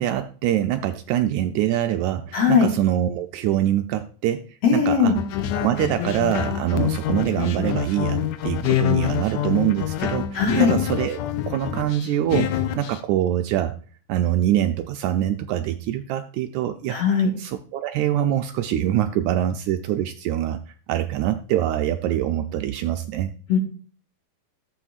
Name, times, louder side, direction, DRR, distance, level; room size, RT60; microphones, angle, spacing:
voice 1, 0.0-4.4 4.7-5.1 5.6-11.2 11.5-13.7 14.1-17.0 17.4-23.3, right 12 dB, 80° right, 6 dB, 1.7 m, -24 dB
voice 2, 2.3-2.7 4.6-5.1 10.3-10.7 16.9-17.3 23.5-23.6, left 6 dB, 55° left, 1 dB, 2.4 m, -18 dB
sound 1, 5.2-13.0, left 11 dB, 80° left, 1.7 m, -26 dB
14.0 x 7.6 x 2.4 m, 0.43 s
omnidirectional pair, 3.7 m